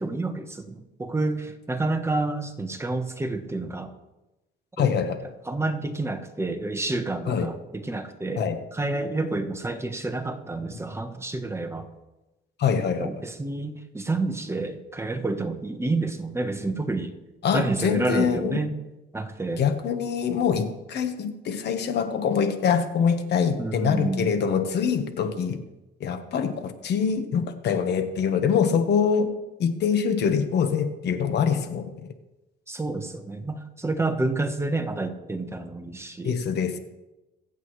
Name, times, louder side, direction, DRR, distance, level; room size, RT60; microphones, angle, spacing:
voice 1, 0.0-3.9 4.8-4.9 5.5-11.9 13.0-17.2 17.5-18.7 19.1-19.6 23.6-24.4 32.7-36.4, right 2 dB, 15° right, 7 dB, 1.1 m, -29 dB
voice 2, 4.8-5.2 7.3-7.5 8.4-8.6 12.6-13.1 17.4-18.6 19.6-25.6 26.0-29.3 29.6-32.1 36.2-36.8, left 7 dB, 60° left, 8 dB, 1.3 m, -24 dB
23.0 x 8.3 x 3.2 m, 1.0 s
cardioid pair, 110°, 19 cm